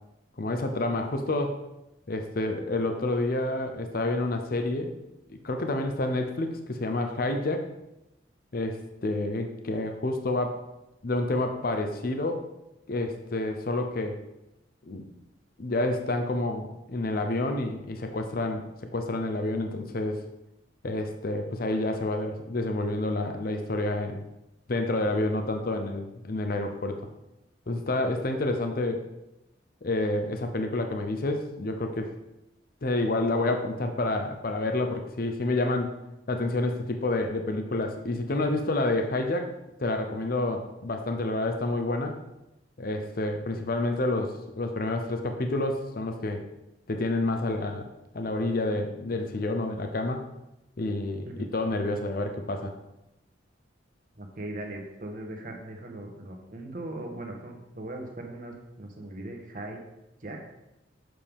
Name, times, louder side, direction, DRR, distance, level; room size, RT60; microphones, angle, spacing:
voice 1, 0.4-1.6 2.1-4.9 5.3-7.7 8.5-10.6 11.0-12.5 12.9-14.2 14.8-15.0 15.6-20.2 20.8-24.2 24.7-27.1 27.7-29.1 29.8-32.1 32.8-36.0 36.3-39.5 39.8-42.2 42.8-46.4 46.9-47.9 48.1-50.3 50.8-52.7, left 2 dB, 50° left, 5 dB, 0.7 m, -29 dB
voice 2, 54.1-59.8 60.2-60.4, right 1 dB, 45° right, 2 dB, 1.3 m, -39 dB
7.7 x 6.6 x 3.6 m, 0.91 s
head